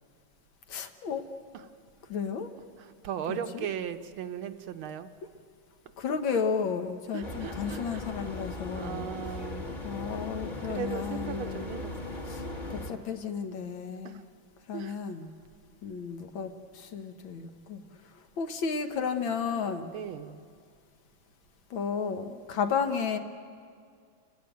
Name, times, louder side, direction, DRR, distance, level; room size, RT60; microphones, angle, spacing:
voice 1, 0.7-1.2 2.1-2.5 3.3-3.7 6.0-9.4 9.8-11.7 12.3-12.5 12.7-14.2 14.7-15.3 15.8-19.9 21.7-23.2, left 6 dB, 65° left, 7 dB, 1.9 m, -33 dB
voice 2, 2.8-5.1 6.3-6.4 7.1-8.0 8.7-9.7 10.7-11.9 14.0-14.2 14.7-15.0 19.9-20.5, right 9 dB, 75° right, 9 dB, 1.6 m, -37 dB
sound 1, 7.2-12.9, left 2 dB, 25° left, 1.7 m, -38 dB
29.0 x 15.0 x 9.3 m, 2.1 s
omnidirectional pair, 2.4 m